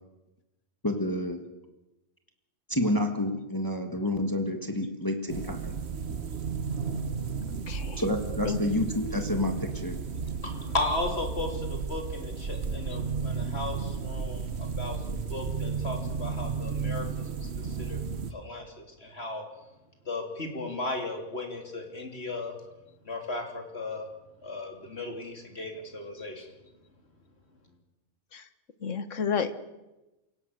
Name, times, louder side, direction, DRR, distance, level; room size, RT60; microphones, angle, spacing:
voice 1, 0.8-1.4 2.7-5.8 8.0-10.0, left 1 dB, 15° left, 5 dB, 1.6 m, -29 dB
sound 1, 5.3-18.3, right 5 dB, 60° right, 1.4 m, -33 dB
voice 2, 7.7-8.0 8.4-8.6 26.2-26.3 28.3-28.5 28.8-29.5, left 6 dB, 80° left, 12 dB, 1.6 m, -31 dB
voice 3, 10.4-14.5 14.8-15.0 15.3-17.5 17.8-18.0 18.3-19.4 20.1-22.5 23.1-24.1 24.4-26.5, left 2 dB, 55° left, 3 dB, 3.6 m, -35 dB
27.5 x 18.0 x 6.6 m, 1.0 s
omnidirectional pair, 1.3 m